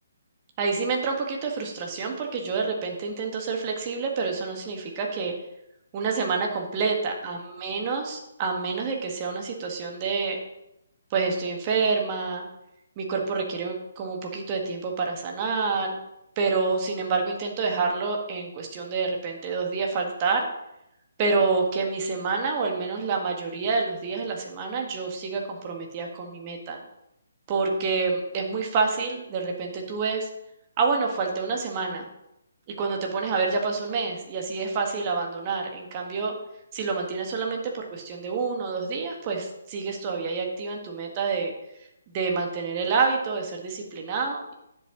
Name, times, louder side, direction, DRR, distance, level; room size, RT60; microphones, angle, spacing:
voice 1, 0.6-5.3 5.9-10.4 11.1-12.5 13.0-16.0 16.4-20.5 21.2-26.8 27.5-30.3 30.8-32.1 32.8-36.3 36.7-41.5 42.1-44.5, right 4 dB, 25° right, 1 dB, 1.5 m, -28 dB
10.5 x 7.6 x 3.0 m, 0.84 s
figure-of-eight pair, 135°, 0 cm